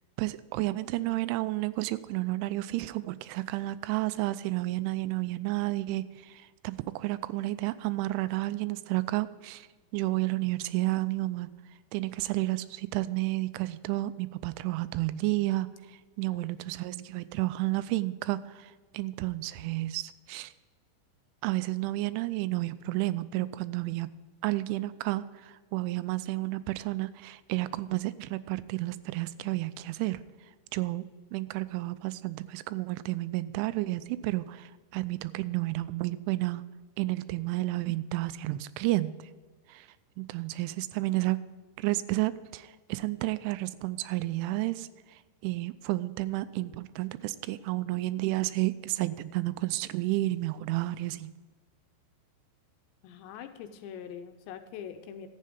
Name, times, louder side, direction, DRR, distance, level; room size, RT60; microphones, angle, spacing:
voice 1, 0.2-9.7 9.9-11.5 11.9-15.7 16.2-20.5 21.4-24.1 24.4-30.2 30.7-31.0 31.3-36.6 37.0-39.1 39.7-39.9 40.2-41.4 41.8-44.9 45.4-51.3, right 18 dB, 90° right, 15 dB, 3.0 m, -31 dB
voice 2, 16.3-16.8 53.0-55.3, left 8 dB, 80° left, 7 dB, 2.8 m, -44 dB
12.0 x 8.5 x 5.2 m, 1.4 s
omnidirectional pair, 5.4 m